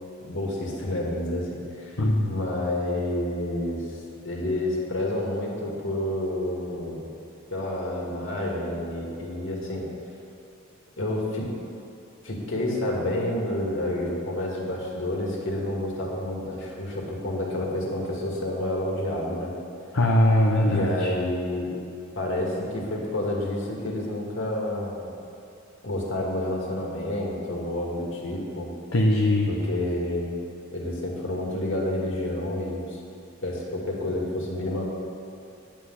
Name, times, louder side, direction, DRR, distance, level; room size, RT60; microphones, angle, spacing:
voice 1, 0.2-1.5 1.8-2.0 2.3-7.0 7.5-9.8 11.0-11.5 12.2-19.5 20.6-21.7 22.2-25.1 25.8-28.7 29.5-30.3 30.7-33.0 33.4-34.8, left 1 dB, 65° left, -2 dB, 2.3 m, -29 dB
voice 2, 2.0-2.3 19.9-21.1 28.9-29.5, left 1 dB, 80° left, -1 dB, 0.9 m, -21 dB
10.5 x 6.2 x 7.9 m, 2.7 s
head